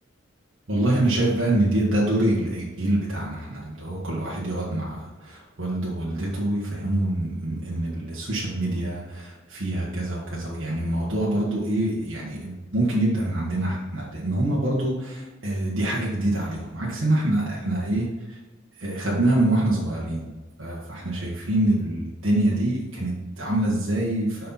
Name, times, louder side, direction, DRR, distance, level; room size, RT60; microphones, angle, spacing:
voice 1, 0.7-18.1 18.8-20.3 20.6-24.5, right 1 dB, 70° right, -6 dB, 1.5 m, -25 dB
6.5 x 5.6 x 4.1 m, 1.2 s
head